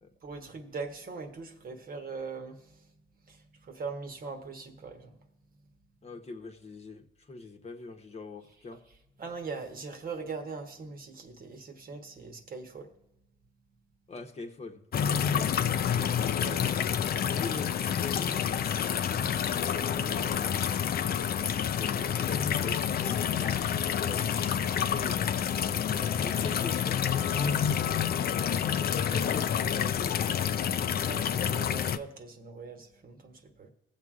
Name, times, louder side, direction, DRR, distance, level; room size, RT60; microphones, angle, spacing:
voice 1, 0.2-2.8 3.3-5.2 9.2-12.9 16.4-17.0 19.4-20.5 31.0-33.7, right 4 dB, 45° right, 1.2 m, -41 dB
voice 2, 6.0-8.8 14.1-14.9 17.1-18.4 21.3-23.6 23.9-25.4 26.2-28.0 28.5-30.5, left 4 dB, 30° left, 1.0 m, -42 dB
sound 1, 14.9-32.0, left 8 dB, 50° left, 0.5 m, -28 dB
20.5 x 7.4 x 2.4 m
cardioid pair, 90°, 20 cm